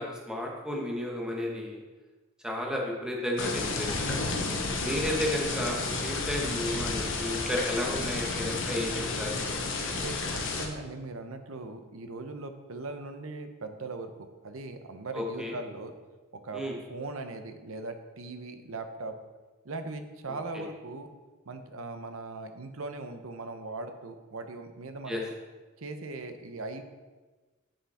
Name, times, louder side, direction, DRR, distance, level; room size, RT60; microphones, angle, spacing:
voice 1, 0.0-1.8 2.4-4.2 4.8-9.4 15.1-15.6 16.5-16.8 20.5-20.6 25.1-25.2, left 1 dB, 5° right, -1 dB, 1.3 m, -33 dB
sound 1, 3.4-10.7, left 3 dB, 65° left, 1.1 m, -31 dB
voice 2, 9.9-15.9 16.3-16.6 16.9-19.1 19.6-21.1 21.5-25.3 25.8-26.8, right 3 dB, 90° right, 7 dB, 0.8 m, -39 dB
8.6 x 5.7 x 4.3 m, 1.3 s
head